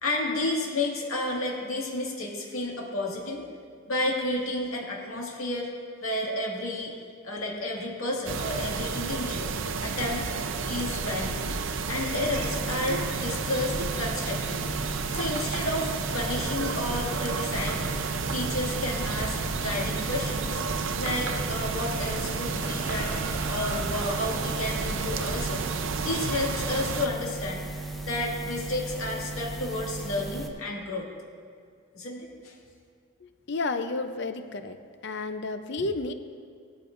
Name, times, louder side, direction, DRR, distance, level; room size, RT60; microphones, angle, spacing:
voice 1, 0.0-3.4 3.9-5.7 6.0-6.9 7.2-9.5 9.8-10.2 10.7-11.4 11.9-14.7 15.1-17.9 18.3-20.6 21.0-23.2 23.5-25.6 26.0-27.6 28.0-31.1 31.9-32.6, left 2 dB, 80° left, -2 dB, 2.1 m, -31 dB
sound 1, 8.3-27.1, right 4 dB, 60° right, 0.6 m, -31 dB
sound 2, 12.4-30.5, right 2 dB, ahead, 0.7 m, -37 dB
sound 3, 22.4-24.7 26.5-26.6, equal, 15° left, 2.1 m, -44 dB
voice 2, 33.2-34.8 35.0-36.1, left 3 dB, 50° left, 9 dB, 0.6 m, -31 dB
17.5 x 13.5 x 2.6 m, 2.2 s
head